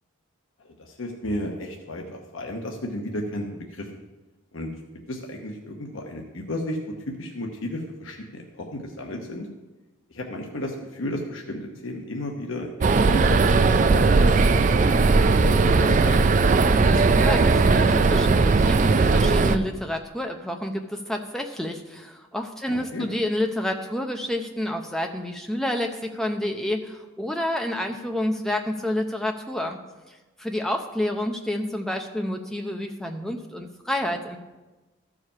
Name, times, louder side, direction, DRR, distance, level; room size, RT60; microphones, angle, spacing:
voice 1, 0.6-3.9 4.5-4.7 5.1-6.8 7.1-9.5 10.1-16.3 22.7-23.1, left 1 dB, 75° left, 1 dB, 1.0 m, -33 dB
sound 1, 12.8-19.6, right 4 dB, 35° right, 0.3 m, -18 dB
voice 2, 16.8-29.8 30.1-34.4, left 1 dB, ahead, 3 dB, 0.7 m, -29 dB
13.5 x 4.9 x 5.5 m, 1.1 s
head